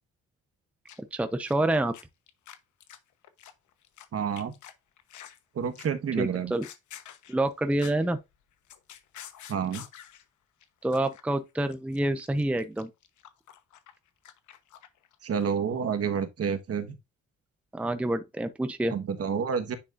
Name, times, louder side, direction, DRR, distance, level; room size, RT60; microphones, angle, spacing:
sound 1, 0.9-1.2 1.4-4.1 4.4-5.4 5.8-6.1 6.4-8.1 8.4-10.2 10.6-10.7 10.9-11.2 11.5-15.1 15.4-15.5, left 10 dB, 75° left, 1.1 m, -48 dB
voice 1, 1.1-1.9 6.2-6.7 7.3-8.2 10.8-12.9 17.7-18.9, right 1 dB, 5° right, 0.7 m, -27 dB
voice 2, 4.1-4.5 5.5-6.5 9.5-9.8 15.2-16.9 18.9-19.8, right 7 dB, 50° right, 1.3 m, -29 dB
10.0 x 4.2 x 2.5 m
cardioid pair, 90°, 30 cm